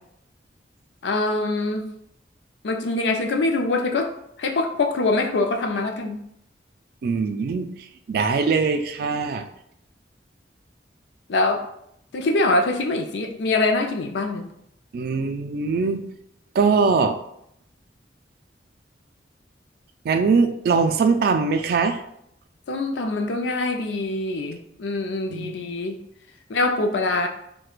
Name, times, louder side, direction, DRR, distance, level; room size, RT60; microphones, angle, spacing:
voice 1, 1.0-1.9 2.6-4.1 4.4-6.2 11.3-11.6 12.1-14.5 22.7-26.0 26.5-27.3, left 2 dB, 80° left, 4 dB, 0.5 m, -24 dB
voice 2, 7.0-7.7 8.1-9.4 14.9-16.0 16.5-17.2 20.0-22.0 25.3-25.6, right 4 dB, 60° right, 7 dB, 0.3 m, -21 dB
4.4 x 2.2 x 2.4 m, 0.74 s
head